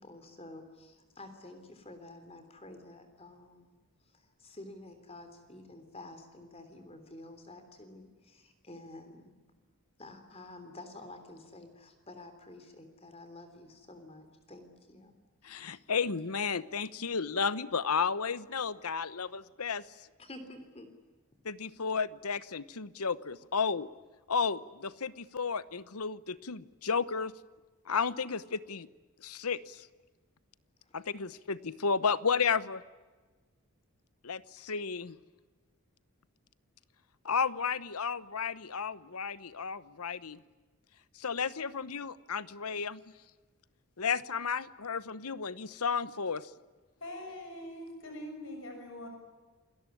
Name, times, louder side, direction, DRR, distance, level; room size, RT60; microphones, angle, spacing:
voice 1, 0.0-3.7 4.0-9.3 10.0-15.1 15.5-15.7 20.2-20.9, left 2 dB, 25° left, 8 dB, 3.4 m, -50 dB
voice 2, 15.4-19.8 21.4-23.9 24.3-27.3 27.9-28.9 29.2-29.9 30.9-32.8 34.2-35.2 37.2-40.4 41.1-43.0 44.0-46.5, left 5 dB, 85° left, 16 dB, 1.0 m, -33 dB
voice 3, 47.0-49.1, left 1 dB, 60° left, 4 dB, 6.7 m, -43 dB
28.0 x 19.0 x 9.8 m, 1.3 s
head